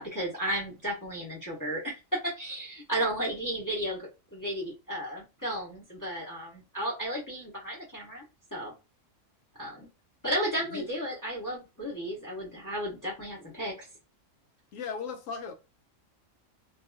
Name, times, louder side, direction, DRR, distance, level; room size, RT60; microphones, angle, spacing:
voice 1, 0.0-8.2 8.5-8.7 9.6-9.9 10.2-13.9, right 1 dB, 15° left, 1.0 m, -34 dB
voice 2, 14.7-15.5, left 5 dB, 90° left, 1.2 m, -36 dB
3.0 x 2.7 x 2.2 m
omnidirectional pair, 1.3 m